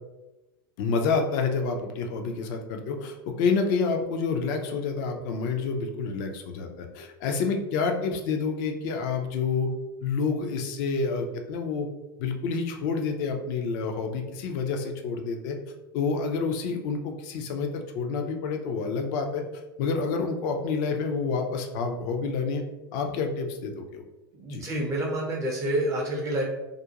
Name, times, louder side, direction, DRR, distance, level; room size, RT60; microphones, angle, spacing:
voice 1, 0.8-9.7 10.0-11.9 12.2-15.6 15.9-19.4 19.8-22.6 22.9-24.0 24.5-24.6, left 4 dB, 50° left, 4 dB, 0.5 m, -28 dB
voice 2, 24.4-26.4, right 1 dB, 25° right, -1 dB, 0.5 m, -28 dB
2.4 x 2.1 x 2.8 m, 1.0 s
hypercardioid pair, 95°, 13 cm